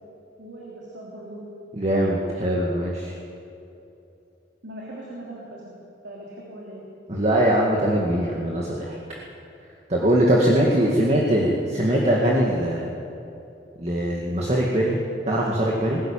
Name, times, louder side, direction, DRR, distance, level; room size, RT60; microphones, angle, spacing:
voice 1, 0.4-1.4 4.6-5.8 6.0-6.8 10.5-11.4, right 1 dB, 80° right, -4 dB, 3.4 m, -39 dB
voice 2, 1.7-3.1 7.1-9.0 9.9-12.9 13.8-15.0 15.3-16.0, right 1 dB, 40° right, -3 dB, 2.1 m, -21 dB
21.0 x 13.5 x 9.0 m, 2.8 s
head